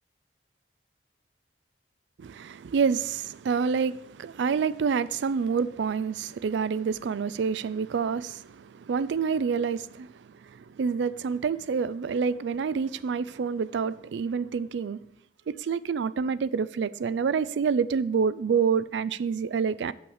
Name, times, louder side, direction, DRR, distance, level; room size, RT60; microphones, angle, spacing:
voice 1, 2.2-15.0 15.5-19.9, right 6 dB, 75° right, 0.3 m, -28 dB
6.4 x 5.6 x 7.2 m
head